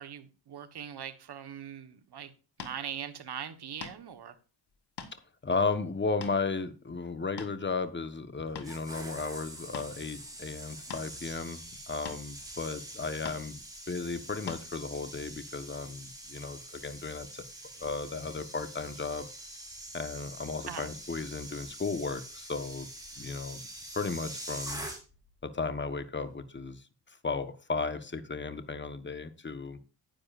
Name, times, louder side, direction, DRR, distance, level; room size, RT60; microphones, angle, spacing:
voice 1, 0.0-2.3 2.6-4.3 20.7-20.9, right 8 dB, 60° right, 9 dB, 1.4 m, -41 dB
sound 1, 2.6-2.8 3.8-4.1 4.7-5.2 5.7-5.8 6.2-6.4 7.1-7.7 8.2-8.7 9.7-9.9 10.9-11.1 12.1-12.2 13.3-13.5 14.5-14.6, left 6 dB, 60° left, 1.6 m, -42 dB
voice 2, 5.4-13.6 13.9-17.4 17.8-19.3 19.9-22.9 23.2-23.7 23.9-24.8 25.4-29.8, left 4 dB, 25° left, 11 dB, 1.3 m, -35 dB
sound 2, 8.4-25.3 25.6-25.9, right 1 dB, 10° right, 3.3 m, -45 dB
10.0 x 9.7 x 2.6 m, 0.35 s
cardioid pair, 70°, 45 cm